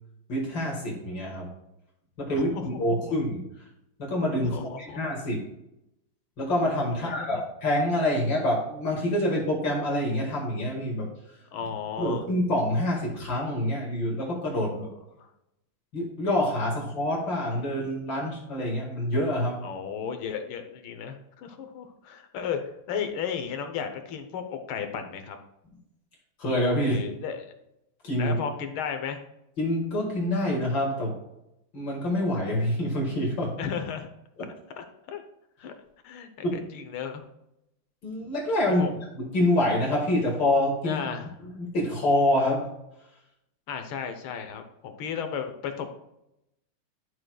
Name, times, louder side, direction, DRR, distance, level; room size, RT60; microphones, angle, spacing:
voice 1, 0.3-1.5 2.2-3.4 4.0-5.4 6.4-11.1 12.0-14.9 15.9-19.6 26.4-27.0 28.0-28.4 29.6-31.2 31.7-33.6 34.4-34.5 36.4-36.6 38.0-38.8 39.1-41.0 41.4-42.7, left 1 dB, 65° left, -3 dB, 2.7 m, -26 dB
voice 2, 2.3-3.1 4.5-5.0 7.0-7.4 11.5-12.3 19.6-22.6 22.9-25.4 26.8-27.5 28.2-29.2 33.6-34.1 34.8-35.2 35.6-35.7 36.0-37.2 38.7-38.9 40.8-41.3 43.7-45.9, left 7 dB, 85° left, 6 dB, 1.8 m, -34 dB
11.5 x 6.3 x 2.3 m, 0.84 s
omnidirectional pair, 2.2 m